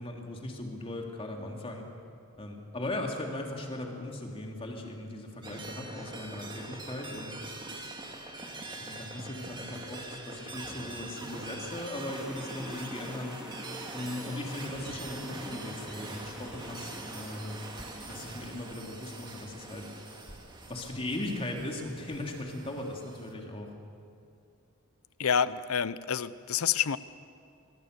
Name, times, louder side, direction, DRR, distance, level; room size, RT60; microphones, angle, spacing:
voice 1, 0.0-1.8 2.4-7.3 8.8-13.3 13.9-17.6 18.0-19.9 20.7-23.7, left 1 dB, 25° left, 1 dB, 3.1 m, -38 dB
sound 1, 5.4-23.3, right 2 dB, 20° right, 2.4 m, -43 dB
sound 2, 12.1-18.5, equal, 5° right, 2.7 m, -47 dB
voice 2, 25.2-27.0, left 7 dB, 75° left, 16 dB, 0.7 m, -28 dB
25.5 x 22.5 x 6.8 m, 2.4 s
head